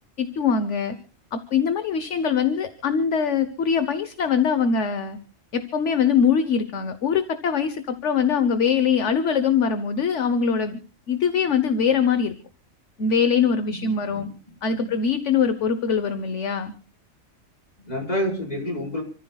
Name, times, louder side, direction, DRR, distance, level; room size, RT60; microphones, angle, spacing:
voice 1, 0.2-0.9 1.3-5.2 5.5-10.8 11.1-12.3 13.0-14.3 14.6-16.7, left 6 dB, 60° left, 9 dB, 1.4 m, -22 dB
voice 2, 13.7-14.3 14.6-14.9 17.8-19.0, equal, 30° left, -1 dB, 5.3 m, -29 dB
29.5 x 14.0 x 2.4 m, 0.37 s
omnidirectional pair, 1.4 m